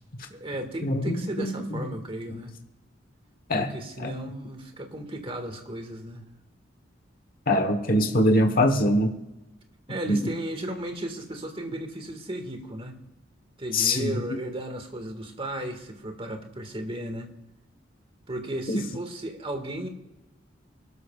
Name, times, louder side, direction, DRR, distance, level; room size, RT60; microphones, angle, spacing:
voice 1, 0.3-2.5 3.6-6.2 9.9-13.0 13.6-17.3 18.3-19.9, right 1 dB, 30° right, 5 dB, 1.8 m, -35 dB
voice 2, 0.8-1.9 3.5-3.7 4.0-4.1 7.5-9.1 10.1-10.3 13.7-14.2 18.7-18.8, left 1 dB, 50° left, 5 dB, 1.1 m, -23 dB
23.5 x 13.0 x 2.4 m, 0.96 s
head